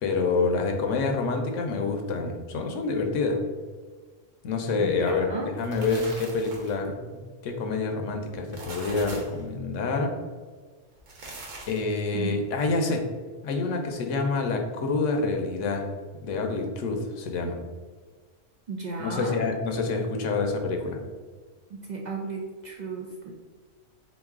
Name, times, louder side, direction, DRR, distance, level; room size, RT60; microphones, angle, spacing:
voice 1, 0.0-3.4 4.4-10.1 11.7-13.0 13.4-15.9 16.2-17.6 19.0-21.0, left 3 dB, 90° left, 4 dB, 1.0 m, -27 dB
voice 2, 4.8-5.5 12.1-12.4 18.7-19.4 21.7-23.3, right 3 dB, 65° right, -1 dB, 0.4 m, -34 dB
sound 1, 5.4-6.9 8.3-9.4 10.9-11.9, right 2 dB, 80° right, 1.3 m, -41 dB
3.9 x 3.1 x 3.6 m, 1.5 s
omnidirectional pair, 1.3 m